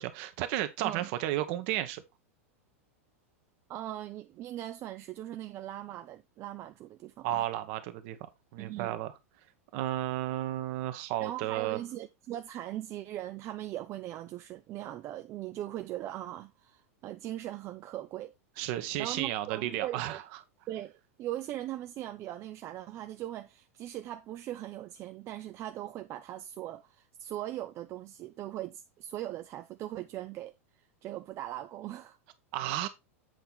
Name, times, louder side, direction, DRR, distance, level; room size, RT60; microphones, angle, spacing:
voice 1, 0.1-2.0 7.2-8.2 8.5-9.1 9.7-11.8 18.6-20.2 32.5-32.9, right 14 dB, 55° right, 1.2 m, -33 dB
voice 2, 3.7-7.5 8.6-8.9 11.2-18.4 19.0-20.2 20.7-32.2, right 13 dB, 40° right, 0.6 m, -40 dB
7.9 x 4.5 x 4.0 m
hypercardioid pair, 100°, 8 cm